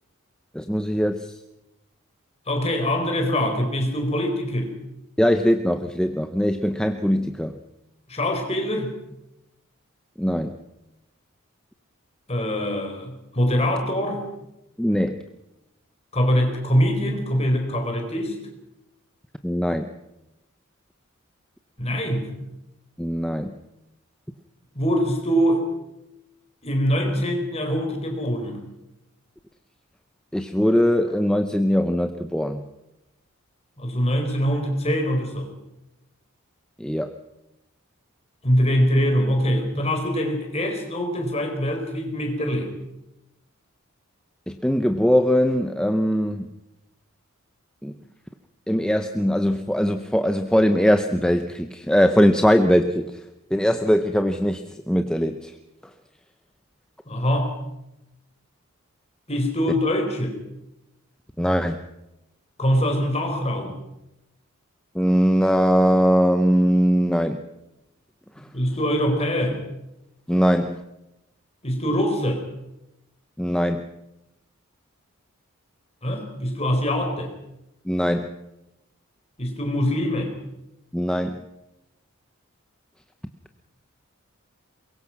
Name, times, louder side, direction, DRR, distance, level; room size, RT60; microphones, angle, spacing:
voice 1, 0.5-1.4 5.2-7.6 10.2-10.6 14.8-15.2 19.4-19.9 23.0-23.6 30.3-32.6 36.8-37.1 44.5-46.5 47.8-47.9 48.7-53.2 53.5-55.6 61.4-61.8 64.9-67.4 68.4-68.5 70.3-70.8 73.4-73.9 77.8-78.4 80.9-81.4, equal, 5° left, 7 dB, 0.8 m, -21 dB
voice 2, 2.5-4.7 8.1-8.9 12.3-14.2 16.1-18.4 21.8-22.3 24.7-25.7 26.6-28.6 33.8-35.5 38.4-42.7 57.1-57.5 59.3-60.4 62.6-63.8 68.5-69.6 71.6-72.4 76.0-77.3 79.4-80.3, equal, 30° left, 4 dB, 4.4 m, -23 dB
23.5 x 22.0 x 6.0 m, 0.91 s
head